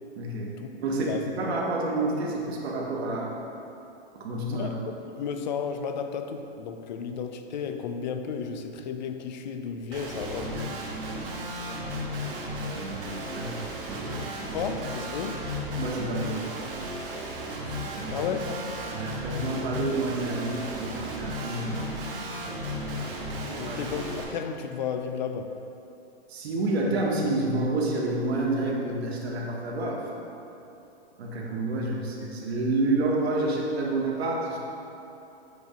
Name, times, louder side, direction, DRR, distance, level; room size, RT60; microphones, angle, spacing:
voice 1, 0.1-3.4 4.1-4.7 12.7-13.0 13.3-13.6 13.9-14.2 15.8-16.4 17.9-18.3 18.9-21.8 23.6-23.8 26.3-30.1 31.2-34.6, right 2 dB, 80° right, -2 dB, 1.2 m, -29 dB
voice 2, 5.2-10.7 14.5-15.4 17.7-17.8 18.1-18.9 23.6-25.5, left 6 dB, 45° left, 7 dB, 0.4 m, -33 dB
Guitar, 9.9-24.2, equal, 60° right, 1.3 m, -34 dB
7.9 x 2.7 x 5.0 m, 3.0 s
hypercardioid pair, 165°, 31 cm